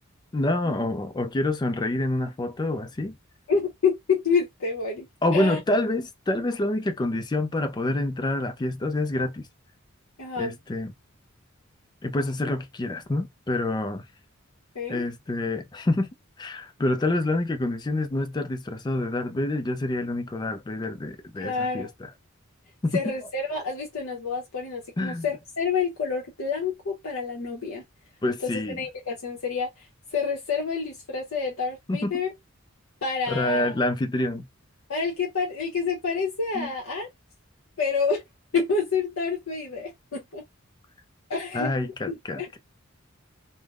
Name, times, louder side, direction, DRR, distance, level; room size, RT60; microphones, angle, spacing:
voice 1, 0.3-3.2 5.2-9.5 10.4-10.9 12.0-14.0 14.9-16.1 16.4-22.1 22.8-23.1 25.0-25.3 28.2-28.8 31.9-32.1 33.3-34.4 36.5-36.7 41.5-42.6, left 2 dB, 20° left, 0.3 m, -27 dB
voice 2, 3.5-5.1 5.3-5.6 10.2-10.5 14.7-15.0 21.4-21.9 22.9-27.8 28.4-29.7 30.1-32.3 33.0-33.7 34.9-37.1 37.8-38.2 38.5-40.4 41.3-41.7 42.1-42.6, left 5 dB, 85° left, 0.8 m, -28 dB
3.3 x 2.1 x 2.3 m
head